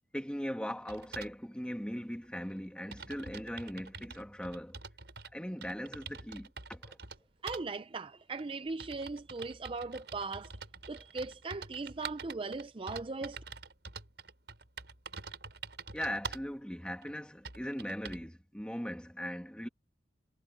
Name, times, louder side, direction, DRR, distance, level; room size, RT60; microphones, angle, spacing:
voice 1, 0.1-4.8 5.3-7.0 15.9-19.7, equal, 5° left, 2.1 m, -39 dB
sound 1, 0.9-1.4 2.2-2.3 2.6-2.7 2.9-5.3 5.6-7.2 7.5-7.6 8.4-16.5 17.0-17.1 17.4-18.3, right 5 dB, 70° right, 5.5 m, -46 dB
voice 2, 7.4-10.5 10.9-13.4, right 3 dB, 30° right, 0.5 m, -39 dB
head